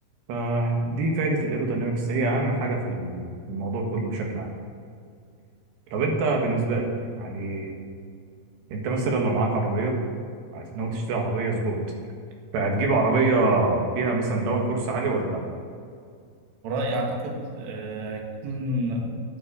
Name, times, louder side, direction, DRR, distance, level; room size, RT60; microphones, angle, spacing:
voice 1, 0.3-4.5 5.9-7.7 8.7-10.0 10.5-11.8 12.5-15.4, right 2 dB, 85° right, 1 dB, 3.8 m, -25 dB
voice 2, 16.6-19.2, equal, 55° right, 1 dB, 2.3 m, -29 dB
9.3 x 8.0 x 7.3 m, 2.2 s
omnidirectional pair, 4.7 m